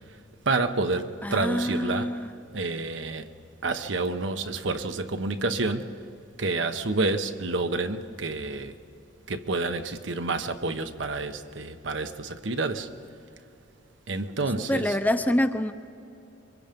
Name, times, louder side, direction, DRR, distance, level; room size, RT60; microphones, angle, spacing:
voice 1, 0.5-3.3 3.6-6.0 6.4-8.8 9.3-12.9 14.1-15.0, right 3 dB, 75° right, 1.1 m, -29 dB
voice 2, 1.2-2.3 14.7-15.7, left 1 dB, 10° left, 0.7 m, -26 dB
26.5 x 24.0 x 5.3 m
head